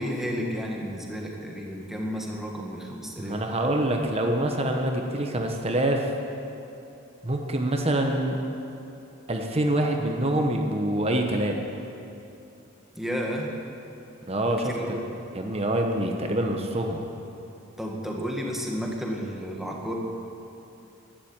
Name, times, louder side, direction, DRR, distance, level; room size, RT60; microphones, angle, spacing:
voice 1, 0.0-3.4 12.9-13.5 14.7-15.0 17.8-19.9, equal, ahead, -1 dB, 1.8 m, -32 dB
voice 2, 3.2-6.1 7.2-8.4 9.3-11.6 14.3-15.0 15.3-17.0, right 1 dB, 30° right, 2 dB, 1.1 m, -25 dB
12.0 x 11.5 x 8.9 m, 2.9 s
head